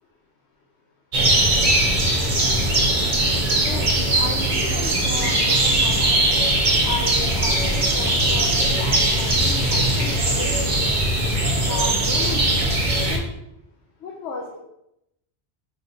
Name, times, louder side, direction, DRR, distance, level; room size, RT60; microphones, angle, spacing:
sound 1, 1.1-13.2, right 1 dB, 50° right, 0.9 m, -20 dB
voice 1, 3.6-6.1 6.8-11.0 11.7-12.8 13.1-13.3 14.0-14.6, left 4 dB, 80° left, -2 dB, 0.9 m, -34 dB
sound 2, 5.7-12.9, right 2 dB, 10° right, 0.7 m, -36 dB
5.1 x 3.2 x 2.8 m, 0.82 s
omnidirectional pair, 1.1 m